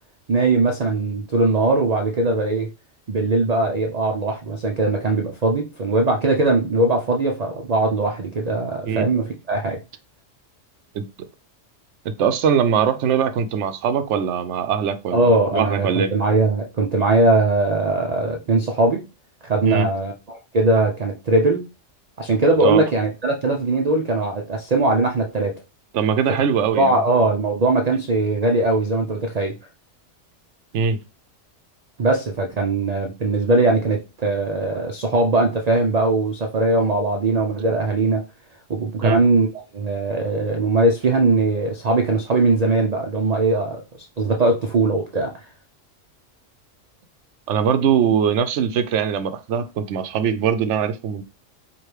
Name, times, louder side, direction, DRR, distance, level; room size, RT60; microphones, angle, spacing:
voice 1, 0.3-2.7 3.1-9.8 15.1-19.0 19.4-21.7 22.2-25.6 26.8-29.6 32.0-38.2 38.7-39.5 39.7-43.8 44.2-45.3, right 2 dB, 50° right, 0.5 m, -20 dB
voice 2, 12.0-16.2 19.7-19.9 22.6-22.8 25.9-27.0 30.7-31.0 39.0-39.2 47.5-51.2, right 7 dB, 75° right, 0.9 m, -21 dB
4.8 x 2.5 x 3.2 m
omnidirectional pair, 1.3 m